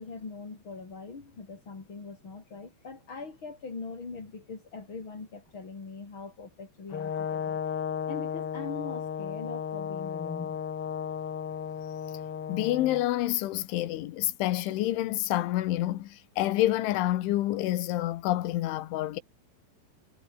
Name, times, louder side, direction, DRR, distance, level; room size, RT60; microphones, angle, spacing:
voice 1, 0.0-7.6 8.1-10.6, left 4 dB, 30° left, 4.3 m, -42 dB
Brass instrument, 6.9-13.0, left 7 dB, 50° left, 1.8 m, -34 dB
voice 2, 12.5-19.2, left 15 dB, 90° left, 3.8 m, -28 dB
omnidirectional pair, 5.4 m